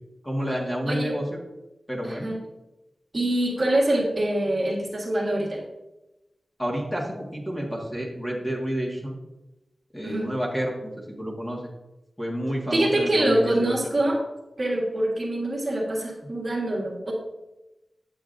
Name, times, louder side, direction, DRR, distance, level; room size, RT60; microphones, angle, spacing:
voice 1, 0.2-1.2 1.9-2.3 6.6-9.2 9.9-10.9 11.2-11.6 12.2-13.9, equal, 10° left, -3 dB, 1.7 m, -29 dB
voice 2, 0.8-1.1 2.0-2.4 3.1-5.6 10.0-10.3 12.7-14.2 14.6-17.1, right 1 dB, 40° right, -3 dB, 1.6 m, -24 dB
8.2 x 7.8 x 2.6 m, 0.98 s
wide cardioid pair, 110°, 0 cm